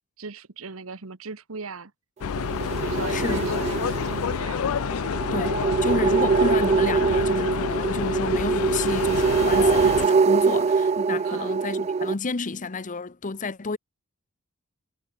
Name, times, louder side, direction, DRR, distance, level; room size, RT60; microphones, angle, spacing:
voice 1, 0.2-1.9 2.9-4.8 11.2-11.6, right 4 dB, 65° right, 1.2 m, -39 dB
sound 1, 2.2-10.1, left 7 dB, 70° left, 0.4 m, -28 dB
sound 2, 2.2-12.1, right 5 dB, 30° right, 0.3 m, -23 dB
voice 2, 3.1-3.4 5.3-13.8, left 3 dB, 35° left, 0.8 m, -30 dB
head